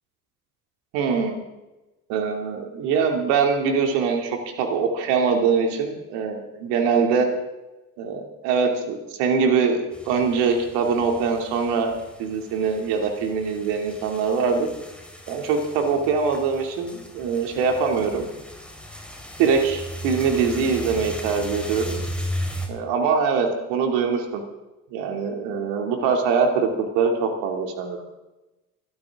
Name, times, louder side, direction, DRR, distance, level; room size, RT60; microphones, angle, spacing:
voice 1, 0.9-1.4 2.1-7.3 8.0-11.9 12.2-14.7 15.3-18.3 19.4-22.0 22.7-24.4 24.9-28.0, right 5 dB, 60° right, 4 dB, 2.8 m, -23 dB
sound 1, 9.9-22.7, equal, ahead, 3.8 m, -36 dB
24.0 x 13.0 x 3.7 m, 1.0 s
figure-of-eight pair, 65°, 45 cm